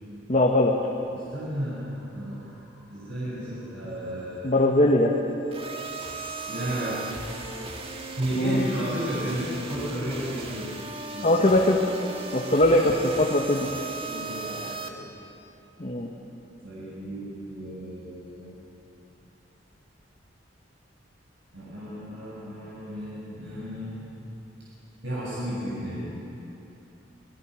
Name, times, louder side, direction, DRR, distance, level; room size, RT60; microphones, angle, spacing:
voice 1, 0.3-0.8 4.4-5.2 8.4-8.6 11.2-11.8 12.3-13.7 15.8-16.1, left 1 dB, 35° left, -1 dB, 1.5 m, -21 dB
voice 2, 1.1-4.5 6.5-7.8 8.1-10.7 11.1-11.3 14.1-15.0 16.6-18.5 21.5-24.1 25.0-26.1, equal, 65° right, -8 dB, 7.1 m, -33 dB
sound 1, 5.5-14.9, right 3 dB, 30° right, 1.8 m, -37 dB
27.0 x 20.5 x 6.4 m, 3.0 s
head